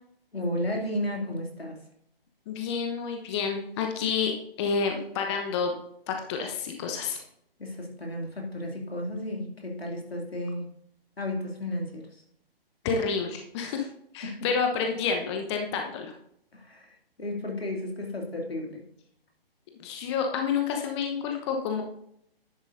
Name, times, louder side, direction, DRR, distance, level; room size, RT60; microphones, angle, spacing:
voice 1, 0.3-1.8 7.6-10.7 11.2-12.2 14.2-14.5 16.5-18.9, left 1 dB, 85° left, 1 dB, 2.6 m, -33 dB
voice 2, 2.5-5.7 6.1-7.2 12.8-13.9 14.1-16.1 19.8-21.8, left 5 dB, 30° left, 3 dB, 1.0 m, -29 dB
10.5 x 8.0 x 2.7 m, 0.72 s
figure-of-eight pair, 130°, 30 cm